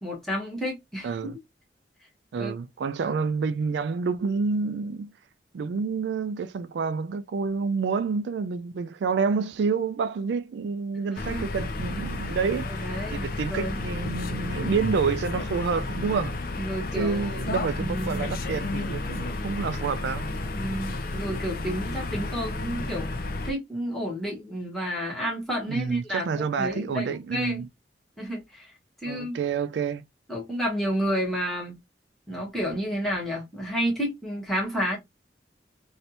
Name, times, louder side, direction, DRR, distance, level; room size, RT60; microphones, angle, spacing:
voice 1, 0.0-1.3 2.4-2.5 11.1-11.4 12.7-13.8 16.6-18.2 20.5-27.6 28.2-28.7 29.0-29.4 30.3-31.7 32.3-35.0, equal, ahead, 1.5 m, -31 dB
voice 2, 1.0-1.4 2.3-5.1 5.5-16.4 17.0-20.3 25.7-27.7 29.1-30.0, right 5 dB, 75° right, 0.3 m, -28 dB
sound 1, 11.2-23.5, left 2 dB, 55° left, 0.6 m, -32 dB
3.2 x 2.7 x 2.7 m
head